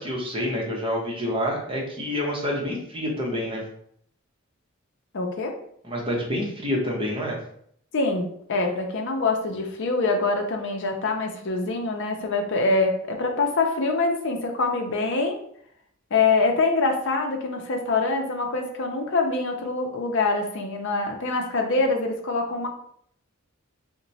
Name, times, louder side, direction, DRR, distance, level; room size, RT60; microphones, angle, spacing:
voice 1, 0.0-3.6 5.8-7.4, left 1 dB, 25° right, -2 dB, 0.8 m, -27 dB
voice 2, 5.1-5.5 7.9-15.4 16.1-22.7, left 3 dB, 60° left, 3 dB, 0.6 m, -24 dB
2.9 x 2.2 x 3.9 m, 0.67 s
head